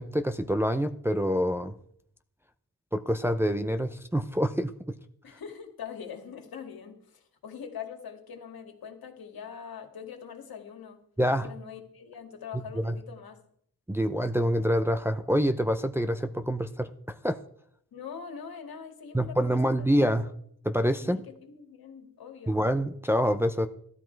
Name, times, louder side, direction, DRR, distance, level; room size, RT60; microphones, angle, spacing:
voice 1, 0.0-1.7 2.9-4.7 11.2-11.5 12.8-12.9 13.9-16.9 17.2-17.4 19.1-20.3 20.6-21.2 22.5-23.7, equal, 5° right, 6 dB, 0.5 m, -26 dB
voice 2, 5.2-11.0 11.3-13.4 17.9-20.0 21.0-22.6, left 7 dB, 70° left, 4 dB, 2.1 m, -43 dB
14.0 x 12.5 x 4.6 m, 0.67 s
wide cardioid pair, 125°, 37 cm